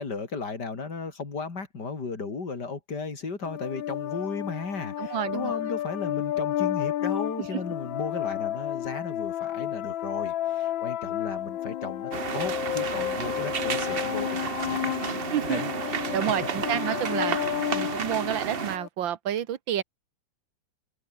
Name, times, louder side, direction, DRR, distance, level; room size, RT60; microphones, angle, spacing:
voice 1, 0.0-15.2 15.5-15.7, left 4 dB, 60° left, 4.0 m, -35 dB
sound 1, 3.4-18.9, left 12 dB, 85° left, 1.7 m, -31 dB
voice 2, 5.0-5.5 15.3-15.6 16.1-19.8, right 10 dB, 80° right, 2.0 m, -29 dB
sound 2, 12.1-18.8, right 7 dB, 40° right, 0.9 m, -32 dB
open air
omnidirectional pair, 2.1 m